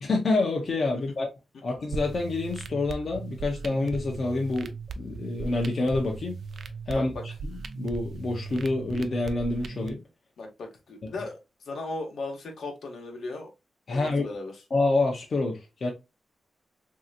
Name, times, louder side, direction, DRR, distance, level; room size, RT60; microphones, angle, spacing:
voice 1, 0.0-1.3 1.6-6.3 6.9-7.1 7.4-10.0 13.9-14.2 14.7-15.9, left 2 dB, 45° left, 0.6 m, -27 dB
sound 1, 1.9-9.9, right 4 dB, 55° right, 0.3 m, -38 dB
voice 2, 6.9-7.2 10.4-11.4 11.7-13.5 13.9-14.5, left 2 dB, 75° left, 0.9 m, -36 dB
3.3 x 2.7 x 2.6 m
wide cardioid pair, 165°, 0 cm